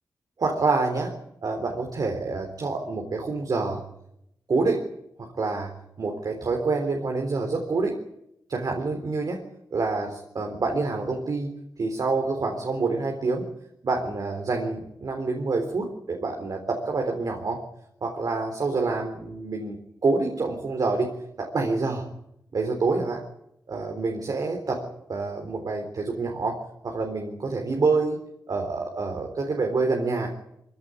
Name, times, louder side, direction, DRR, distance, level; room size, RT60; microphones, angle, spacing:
voice 1, 0.4-3.8 4.5-4.9 5.2-5.7 6.0-8.0 8.5-9.4 9.7-13.5 13.8-17.6 18.0-19.8 20.0-21.1 21.4-22.1 22.5-23.2 23.7-30.3, right 3 dB, 60° right, 3 dB, 3.8 m, -27 dB
25.0 x 16.5 x 9.8 m, 0.80 s
wide cardioid pair, 120°, 7 cm